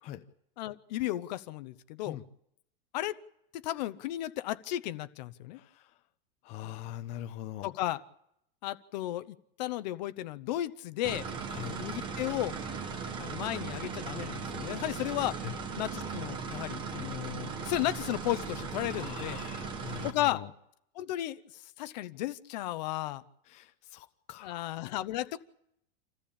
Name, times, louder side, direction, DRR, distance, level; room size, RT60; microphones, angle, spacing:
voice 1, 0.6-2.2 2.9-3.2 3.5-5.6 7.6-8.0 8.6-11.3 11.8-12.6 13.2-15.4 15.8-19.4 20.0-20.4 21.0-23.2 24.4-25.4, left 14 dB, 45° left, 14 dB, 0.9 m, -34 dB
voice 2, 5.5-6.0 6.4-7.7 11.5-11.8 15.4-15.5 17.4-17.7 18.9-20.5 23.5-24.8, left 13 dB, 25° left, 7 dB, 0.8 m, -43 dB
sound 1, 11.0-20.1, right 5 dB, 15° right, 1.2 m, -38 dB
27.0 x 15.0 x 8.7 m, 0.76 s
supercardioid pair, 180°, 30 cm